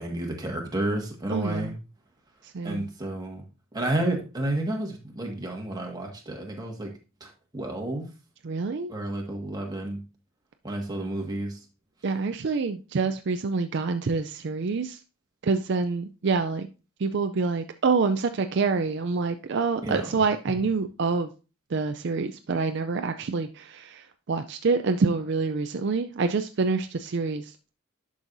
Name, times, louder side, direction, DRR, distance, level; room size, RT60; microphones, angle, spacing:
voice 1, 0.0-1.8 2.6-3.4 3.7-6.9 7.2-8.0 8.9-10.0 10.6-11.6 19.8-20.6, right 1 dB, 20° right, 1.7 m, -31 dB
voice 2, 1.3-1.7 2.5-2.9 8.4-8.9 12.0-15.0 15.4-16.7 17.0-21.3 21.7-24.0 24.3-27.7, right 4 dB, 55° right, 0.4 m, -26 dB
11.0 x 6.2 x 2.6 m
head